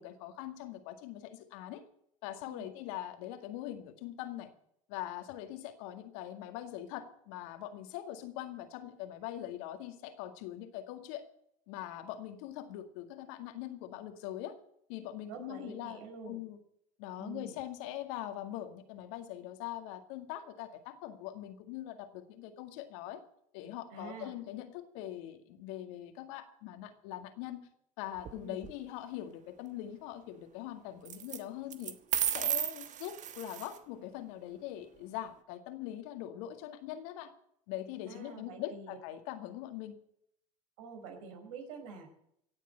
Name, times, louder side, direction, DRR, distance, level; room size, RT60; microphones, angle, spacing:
voice 1, 0.0-1.8 2.2-4.5 4.9-11.3 11.7-14.6 14.9-16.6 17.0-23.2 23.5-27.7 28.0-32.0 32.3-37.3 37.7-40.0, left 12 dB, 70° left, 7 dB, 2.1 m, -42 dB
voice 2, 15.3-16.4 17.1-17.5 23.9-24.3 28.4-28.6 38.1-39.0 40.8-42.1, right 4 dB, 70° right, 4 dB, 4.7 m, -46 dB
Coins Dropping, 28.2-28.7 31.0-31.4 31.7-33.8, right 10 dB, 45° right, 1.3 m, -34 dB
17.0 x 7.5 x 8.9 m, 0.71 s
hypercardioid pair, 80°, 18 cm